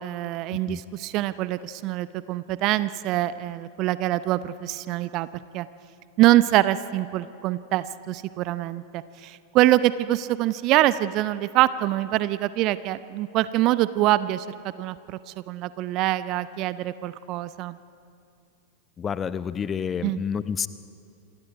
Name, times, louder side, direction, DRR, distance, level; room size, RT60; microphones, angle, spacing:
voice 1, 0.0-5.3 5.5-5.7 6.2-17.8 20.0-20.2, right 15 dB, 40° right, 16 dB, 0.6 m, -24 dB
voice 2, 19.0-20.7, left 7 dB, 20° left, 15 dB, 0.7 m, -29 dB
28.5 x 24.5 x 5.0 m, 2.4 s
figure-of-eight pair, 90°, 0 cm